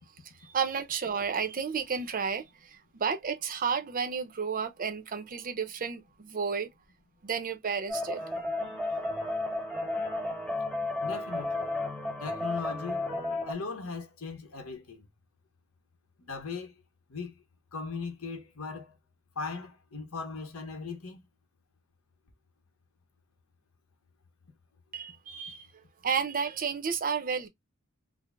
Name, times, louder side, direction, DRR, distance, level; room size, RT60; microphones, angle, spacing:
voice 1, 0.4-6.7 7.2-8.2 24.9-25.7 26.0-27.5, right 6 dB, 40° right, 0.6 m, -32 dB
sound 1, 7.9-13.5, left 2 dB, 5° left, 0.9 m, -33 dB
voice 2, 11.0-11.7 12.2-13.1 13.5-15.1 16.2-16.7 17.1-17.3 17.7-19.0 19.4-21.3, left 4 dB, 75° left, 1.0 m, -38 dB
3.7 x 2.0 x 3.4 m
head